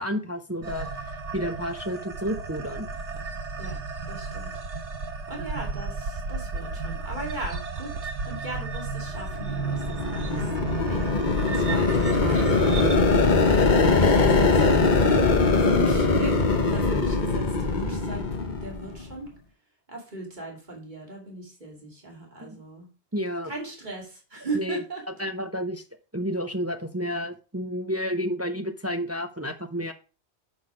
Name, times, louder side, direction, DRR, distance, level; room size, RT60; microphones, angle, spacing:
voice 1, 0.0-2.9 22.4-22.6 23.1-23.5 24.5-24.8 25.2-25.8 26.1-29.9, equal, 15° right, 6 dB, 0.6 m, -30 dB
sound 1, 0.6-12.9, right 4 dB, 85° right, 1.4 m, -34 dB
voice 2, 4.1-4.5 5.3-10.4 10.8-11.0 11.4-15.3 15.5-16.4 16.7-19.3 19.9-22.9 23.5-25.2, right 2 dB, 40° right, -1 dB, 2.8 m, -38 dB
sound 2, 9.3-19.1, left 3 dB, 45° left, 1.1 m, -22 dB
7.0 x 6.3 x 4.9 m, 0.34 s
omnidirectional pair, 1.2 m